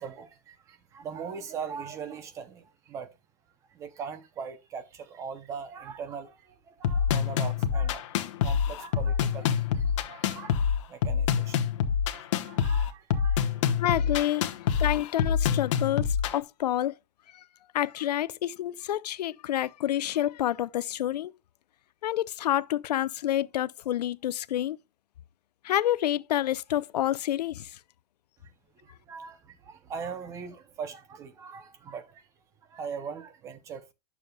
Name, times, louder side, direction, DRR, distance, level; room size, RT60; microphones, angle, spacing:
voice 1, 0.0-3.1 3.7-11.6 12.0-13.7 14.9-15.0 28.4-28.5 28.8-32.3 32.7-33.9, right 6 dB, 15° right, 0.6 m, -41 dB
sound 1, 6.8-16.4, left 7 dB, 50° left, 1.0 m, -26 dB
voice 2, 13.8-14.5 14.8-16.9 17.3-17.4 17.7-21.3 22.0-24.8 25.6-27.7, left 12 dB, 85° left, 0.5 m, -28 dB
10.5 x 7.0 x 2.2 m
supercardioid pair, 165°, 20 cm